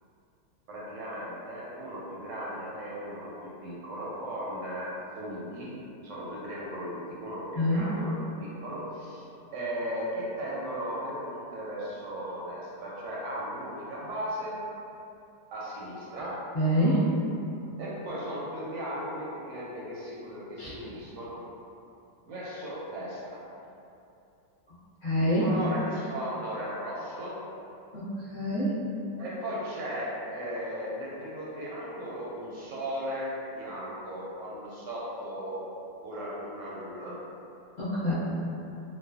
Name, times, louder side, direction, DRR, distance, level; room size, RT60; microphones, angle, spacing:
voice 1, 0.7-5.7 6.0-9.2 9.5-14.6 15.5-16.4 16.7-17.0 17.8-21.4 22.3-23.4 25.2-27.4 29.2-35.6 36.0-37.1, equal, 90° right, -6 dB, 1.2 m, -36 dB
voice 2, 16.5-17.0 20.6-20.8 25.0-25.4 27.9-28.7 37.8-38.1, equal, 35° left, -13 dB, 0.8 m, -26 dB
2.6 x 2.3 x 2.3 m, 2.7 s
omnidirectional pair, 1.8 m